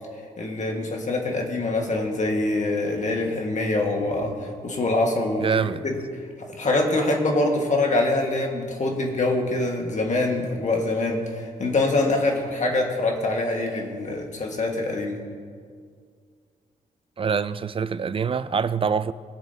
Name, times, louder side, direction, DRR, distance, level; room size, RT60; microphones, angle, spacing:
voice 1, 0.4-5.5 5.8-6.0 6.4-15.2, left 2 dB, 50° left, 1.6 m, -24 dB
voice 2, 5.4-5.9 17.2-19.1, right 6 dB, 35° right, 0.4 m, -25 dB
20.0 x 7.0 x 2.8 m
cardioid pair, 75°, 16 cm